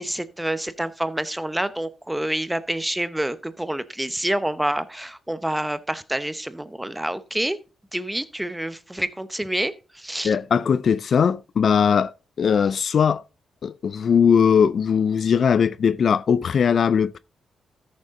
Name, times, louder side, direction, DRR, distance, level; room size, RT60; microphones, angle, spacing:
voice 1, 0.0-7.6 7.9-10.4, right 1 dB, 10° right, 0.9 m, -27 dB
voice 2, 10.2-12.1 12.4-13.2 13.6-17.2, left 7 dB, 60° left, 0.4 m, -19 dB
13.5 x 6.7 x 3.7 m
cardioid pair, 80°, 0 cm